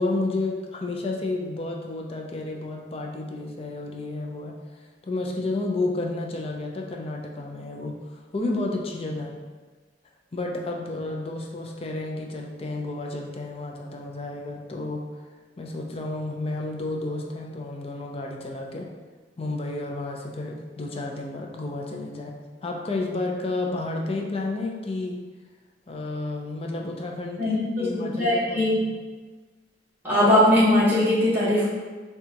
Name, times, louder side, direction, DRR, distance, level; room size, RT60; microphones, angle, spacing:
voice 1, 0.0-4.6 5.0-9.3 10.3-15.1 15.6-18.9 19.4-22.3 22.6-25.2 25.9-28.7, left 2 dB, 35° left, 1 dB, 0.5 m, -31 dB
voice 2, 27.4-28.8 30.0-31.7, left 1 dB, 10° right, -11 dB, 1.2 m, -20 dB
6.4 x 2.4 x 2.9 m, 1.3 s
head